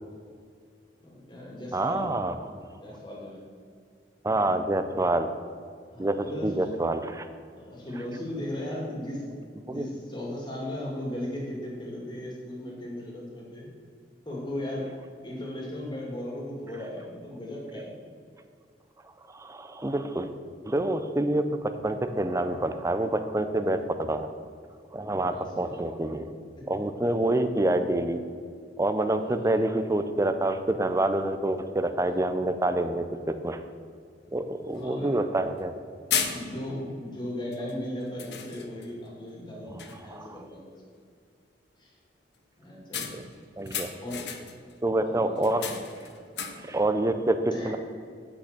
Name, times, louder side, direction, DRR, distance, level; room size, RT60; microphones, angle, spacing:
voice 1, 1.0-2.1 2.7-3.4 5.9-6.5 7.6-9.3 9.7-13.7 14.3-15.0 15.2-17.9 25.1-25.8 26.6-26.7 29.2-29.6 34.7-35.2 36.2-40.7 41.8-41.9 42.6-43.1 44.0-44.3 45.0-45.5 46.6-46.8 47.5-47.7, left 1 dB, 25° left, -3 dB, 2.3 m, -37 dB
voice 2, 1.7-2.7 4.2-5.3 6.0-7.3 9.7-9.8 19.3-20.3 20.6-24.3 24.9-26.3 26.7-28.2 28.8-33.6 34.3-35.7 39.7-39.8 40.1-40.4 42.9-43.2 43.6-43.9 44.8-45.7 46.6-47.8, right 1 dB, 20° right, 9 dB, 0.5 m, -27 dB
sound 1, 34.3-34.4 34.7-34.8 35.6-35.8 36.1-36.8 37.5-37.7 38.2-39.0 39.4-39.5 39.8-40.2 42.9-44.7 45.4-46.8, left 7 dB, 70° left, 0.9 m, -34 dB
8.6 x 5.9 x 6.6 m, 2.2 s
head